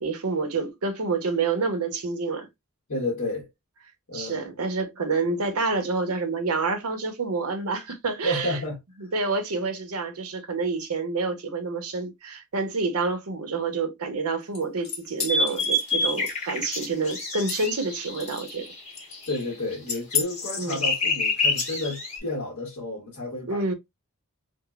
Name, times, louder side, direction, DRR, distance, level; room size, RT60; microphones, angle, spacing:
voice 1, 0.0-2.5 4.1-8.6 9.0-18.7 20.6-20.8 23.5-23.7, right 4 dB, 70° right, 0.7 m, -28 dB
voice 2, 2.9-3.5 4.1-4.5 8.2-8.8 19.3-23.7, left 1 dB, 65° left, 1.1 m, -31 dB
sound 1, 14.5-16.6 17.1-17.8 18.2-18.7 18.9-19.4 19.9-20.2, left 7 dB, 50° left, 1.4 m, -33 dB
sound 2, 15.3-19.4 19.7-22.2, left 2 dB, 30° left, 1.3 m, -27 dB
3.7 x 2.0 x 2.2 m
head